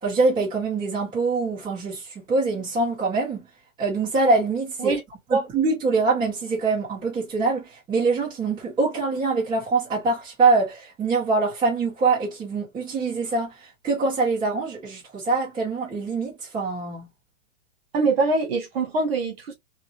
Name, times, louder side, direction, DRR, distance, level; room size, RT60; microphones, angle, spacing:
voice 1, 0.0-3.5 3.8-5.0 5.3-17.1, right 3 dB, 10° right, 1.9 m, -24 dB
voice 2, 17.9-19.5, right 3 dB, 50° right, 1.9 m, -23 dB
3.7 x 2.9 x 2.7 m
hypercardioid pair, 175°, 37 cm